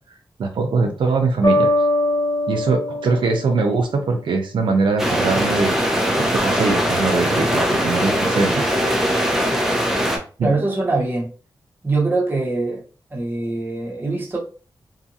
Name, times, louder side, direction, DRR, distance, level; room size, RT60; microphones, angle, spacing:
voice 1, 0.4-1.7 2.5-5.7 6.4-8.7 10.4-10.5, right 4 dB, 75° right, 0.4 m, -21 dB
sound 1, 1.4-4.3, left 1 dB, 75° left, 0.9 m, -22 dB
sound 2, 5.0-10.2, equal, 5° right, 0.6 m, -20 dB
voice 2, 10.4-11.3 11.8-12.8 13.1-14.4, right 3 dB, 25° right, 0.9 m, -22 dB
2.7 x 2.5 x 2.7 m
wide cardioid pair, 130°, 8 cm